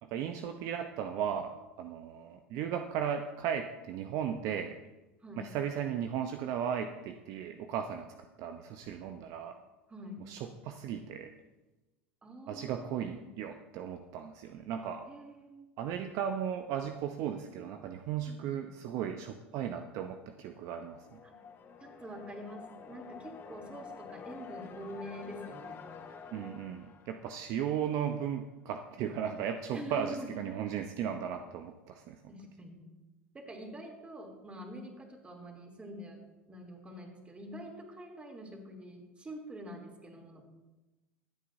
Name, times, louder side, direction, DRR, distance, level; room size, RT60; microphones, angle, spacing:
voice 1, 0.0-4.7 5.4-8.1 8.4-9.6 10.3-11.3 12.5-15.1 15.8-21.2 26.3-32.2, right 8 dB, 55° right, 6 dB, 0.7 m, -36 dB
voice 2, 5.2-5.5 8.8-8.9 9.9-10.3 12.2-13.3 15.1-15.7 18.3-18.7 21.2-21.4 21.8-25.9 29.7-30.5 32.3-32.9 33.3-36.2 36.5-40.4, right 1 dB, 20° right, 1 dB, 3.1 m, -46 dB
sound 1, 20.5-28.2, left 6 dB, 35° left, 1.5 m, -49 dB
23.5 x 8.4 x 2.7 m, 1.1 s
hypercardioid pair, 90°, 7 cm